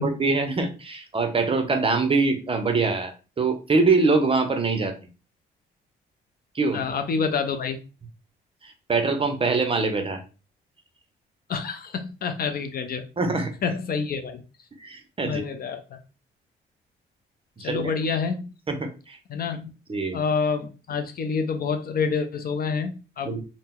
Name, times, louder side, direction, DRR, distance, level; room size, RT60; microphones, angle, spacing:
voice 1, 0.0-4.9 6.5-6.8 8.6-10.2 13.2-13.5 14.8-15.4 17.6-17.9 18.7-19.2 19.9-20.2 23.2-23.5, right 3 dB, 25° right, 0.7 m, -24 dB
voice 2, 6.7-7.8 11.5-13.0 13.6-14.4 15.2-16.0 17.6-18.4 19.3-19.7 20.1-23.3, left 5 dB, 50° left, 0.5 m, -27 dB
2.8 x 2.1 x 3.6 m
cardioid pair, 90°, 20 cm